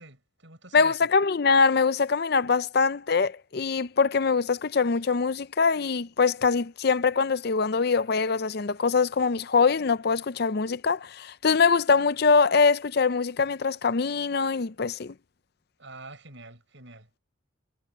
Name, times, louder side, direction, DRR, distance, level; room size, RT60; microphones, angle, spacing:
voice 1, 0.0-1.0 15.8-17.1, right 2 dB, 65° right, 6.5 m, -46 dB
voice 2, 0.7-15.1, left 5 dB, 50° left, 0.5 m, -23 dB
head